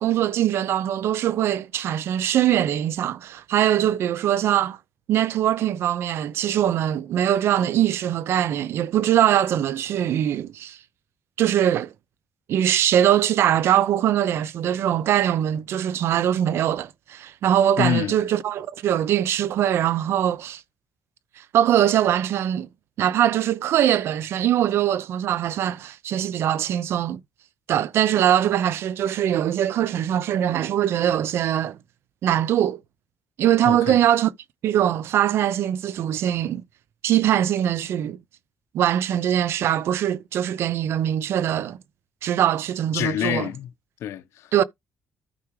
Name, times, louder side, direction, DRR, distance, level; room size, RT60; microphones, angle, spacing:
voice 1, 0.0-4.8 5.1-10.8 11.4-11.9 12.5-20.6 21.5-22.7 23.0-27.2 27.7-31.8 32.2-32.8 33.4-34.3 34.6-36.6 37.0-38.2 38.7-41.8 42.2-43.5 44.5-44.6, right 11 dB, 65° right, 0.6 m, -22 dB
voice 2, 17.8-18.2 33.6-34.0 42.9-43.7 44.0-44.5, left 10 dB, 85° left, 0.9 m, -26 dB
13.0 x 4.8 x 3.2 m
cardioid pair, 165°, 5 cm